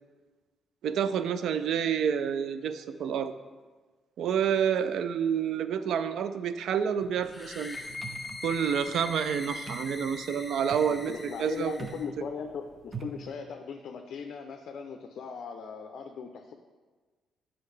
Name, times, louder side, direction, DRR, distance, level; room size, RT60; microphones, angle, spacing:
voice 1, 0.8-3.3 4.2-7.8 8.4-11.8, right 8 dB, 75° right, 11 dB, 0.4 m, -28 dB
sound 1, 7.0-13.3, right 5 dB, 35° right, 0.7 m, -45 dB
sound 2, 7.3-12.1, left 2 dB, 15° left, 0.6 m, -41 dB
voice 2, 11.1-16.5, left 6 dB, 65° left, 4 dB, 0.5 m, -39 dB
8.5 x 5.6 x 3.2 m, 1.4 s
cardioid pair, 90°, 0 cm